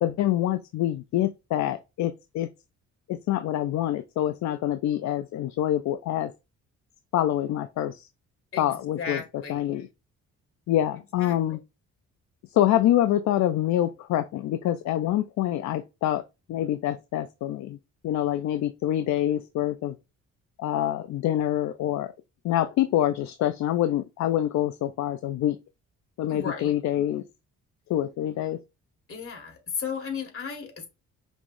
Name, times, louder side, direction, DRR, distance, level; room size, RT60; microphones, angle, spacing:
voice 1, 0.0-2.5 3.1-6.3 7.1-8.1 8.6-9.2 9.5-9.9 10.7-11.6 12.5-16.2 16.5-17.8 18.0-20.0 20.6-22.1 22.4-25.6 26.2-27.2 27.9-28.6, left 12 dB, 65° left, 0.5 m, -26 dB
voice 2, 8.5-9.8 11.2-11.6 26.3-26.8 29.1-30.9, left 6 dB, 45° left, 2.0 m, -35 dB
5.2 x 3.1 x 2.6 m
cardioid pair, 90°, 30 cm